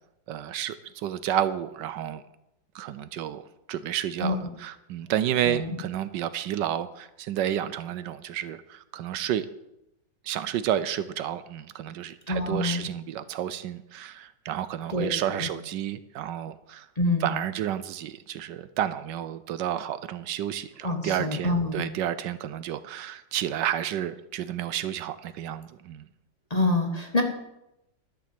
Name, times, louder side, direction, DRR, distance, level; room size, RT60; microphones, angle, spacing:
voice 1, 0.3-2.2 2.7-3.4 3.7-9.5 10.2-16.9 17.2-26.1, right 11 dB, 75° right, 14 dB, 1.2 m, -31 dB
voice 2, 4.2-4.5 5.4-5.8 12.3-12.9 14.9-15.5 17.0-17.3 20.8-21.8 26.5-27.2, left 2 dB, 25° left, 3 dB, 1.2 m, -27 dB
12.0 x 7.0 x 7.5 m, 0.87 s
omnidirectional pair, 2.0 m